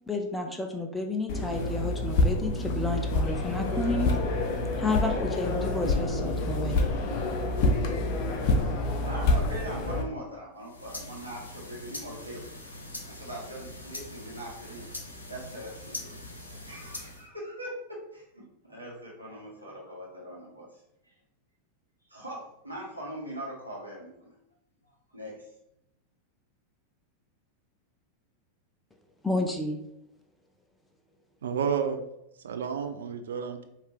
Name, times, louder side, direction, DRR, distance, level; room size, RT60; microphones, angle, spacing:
voice 1, 0.1-4.2 4.8-6.9 29.2-29.8, left 2 dB, 5° left, 2 dB, 0.5 m, -31 dB
sound 1, 1.3-10.0, left 2 dB, 45° left, 0.7 m, -27 dB
voice 2, 9.0-12.5 13.1-14.8 15.3-16.1 16.7-17.7 18.1-20.7 21.0-21.1 22.1-24.3 25.1-25.5, equal, 85° right, -4 dB, 1.4 m, -41 dB
sound 2, 10.6-17.3, left 1 dB, 75° left, 0.8 m, -42 dB
voice 3, 31.4-32.0 32.4-33.6, right 7 dB, 65° right, 7 dB, 0.5 m, -30 dB
4.6 x 2.9 x 3.3 m, 0.81 s
figure-of-eight pair, 90°, 0 cm